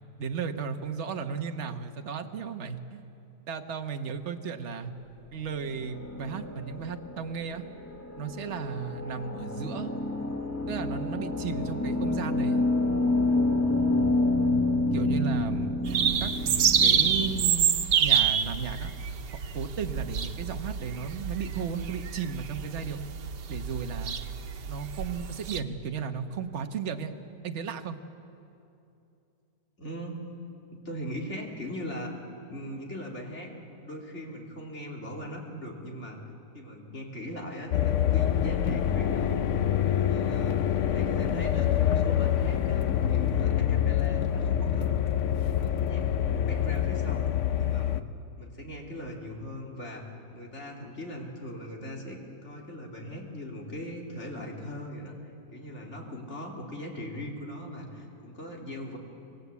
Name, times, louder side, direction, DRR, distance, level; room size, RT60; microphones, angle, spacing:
voice 1, 0.2-3.1 3.5-4.9 5.3-7.6 8.2-9.9 10.7-12.6 14.9-15.7 16.2-17.7 18.0-18.9 19.5-23.0 23.5-24.2 24.7-27.1 27.4-28.0, right 6 dB, 45° right, 6 dB, 1.3 m, -34 dB
sound 1, 5.6-17.5, left 2 dB, 10° left, 0.9 m, -29 dB
sound 2, 15.9-25.6, right 7 dB, 90° right, 1.6 m, -27 dB
voice 2, 29.8-30.2 30.7-32.1 32.5-36.2 36.5-39.4 39.8-45.0 45.5-47.3 47.6-48.0 48.4-50.0 50.3-59.0, equal, 40° left, -1 dB, 3.5 m, -39 dB
sound 3, 37.7-48.0, left 10 dB, 60° left, 0.9 m, -26 dB
25.5 x 20.5 x 8.3 m, 2.8 s
omnidirectional pair, 1.8 m